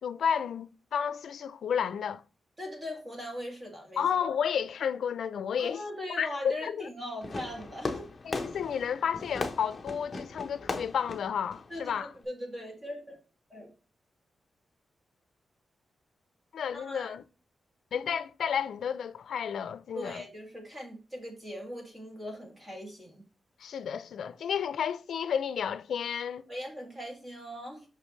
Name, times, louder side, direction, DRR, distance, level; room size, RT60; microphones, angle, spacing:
voice 1, 0.0-2.2 4.0-5.8 6.2-6.9 8.2-12.1 16.5-17.2 17.9-20.3 23.6-26.5, left 7 dB, 75° left, 0.4 m, -31 dB
voice 2, 2.6-4.1 5.6-8.1 11.7-13.2 13.5-13.7 16.7-17.1 19.9-23.2 26.5-27.9, left 1 dB, 20° right, 2.1 m, -40 dB
Fireworks, 7.2-12.2, left 3 dB, 25° left, 0.8 m, -38 dB
6.7 x 5.7 x 3.1 m
wide cardioid pair, 170°, 0 cm